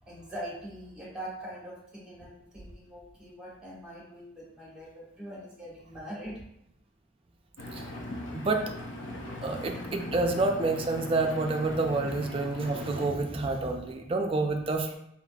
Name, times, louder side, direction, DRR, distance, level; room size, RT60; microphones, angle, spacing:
voice 1, 0.0-6.4, equal, 5° right, -6 dB, 1.6 m, -42 dB
Engine, 7.6-13.1, left 1 dB, 75° left, 0.7 m, -39 dB
voice 2, 9.4-14.9, right 3 dB, 30° right, 3 dB, 0.4 m, -28 dB
4.1 x 4.0 x 2.3 m, 0.77 s
head